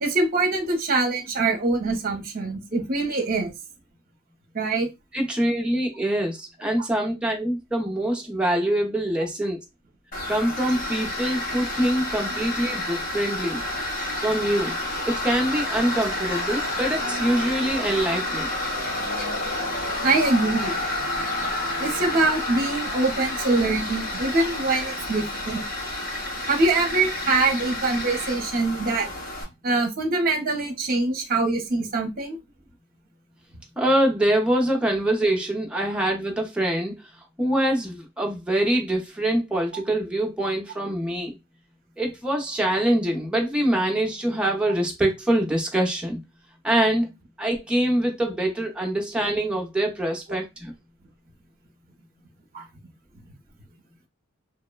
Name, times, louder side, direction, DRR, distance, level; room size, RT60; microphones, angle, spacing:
voice 1, 0.0-3.5 4.5-4.9 20.0-20.8 21.8-25.6 26.5-29.1 29.6-32.4 52.5-52.7, right 3 dB, 45° right, 0.6 m, -24 dB
voice 2, 5.1-9.6 10.3-13.6 14.2-14.8 15.0-18.5 33.8-36.9 37.4-41.4 42.0-46.2 46.6-47.1 47.4-50.7, right 1 dB, 5° right, 0.5 m, -24 dB
Tools, 10.1-29.4, left 1 dB, 40° left, 0.8 m, -30 dB
2.9 x 2.0 x 2.2 m
head